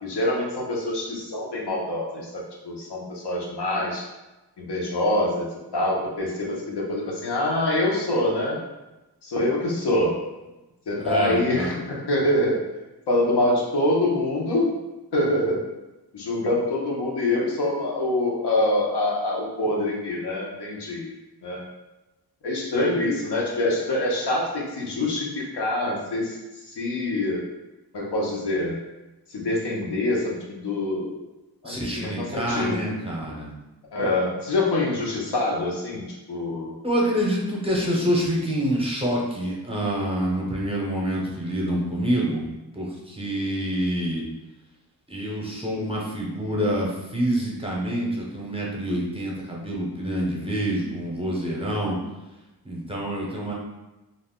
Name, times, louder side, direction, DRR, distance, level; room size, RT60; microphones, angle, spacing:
voice 1, 0.0-4.0 4.6-5.5 5.7-8.6 9.2-10.2 10.9-12.6 13.1-14.7 15.1-15.6 16.1-21.1 21.4-21.7 22.4-26.4 26.8-27.4 27.9-28.8 29.3-31.2 31.6-32.8 33.9-36.7, left 1 dB, 90° left, -3 dB, 0.8 m, -25 dB
voice 2, 11.0-11.7 31.6-33.5 36.8-44.2 45.1-52.0 52.6-53.5, equal, 15° right, -3 dB, 0.6 m, -27 dB
2.5 x 2.0 x 3.5 m, 1.0 s
wide cardioid pair, 100°, 40 cm